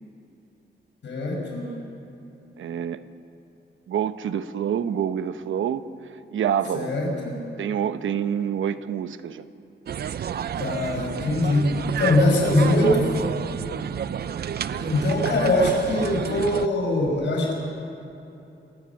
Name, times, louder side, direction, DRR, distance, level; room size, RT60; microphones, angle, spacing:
voice 1, 1.0-1.8 6.7-7.4 10.6-13.1 14.7-17.5, left 1 dB, 65° left, -1 dB, 6.4 m, -22 dB
voice 2, 2.6-3.0 3.9-5.8 6.3-6.9 7.6-9.4, right 8 dB, 90° right, 11 dB, 0.9 m, -27 dB
sound 1, 9.9-16.7, right 8 dB, 55° right, 0.6 m, -30 dB
27.5 x 17.0 x 7.3 m, 2.9 s
wide cardioid pair, 170°, 20 cm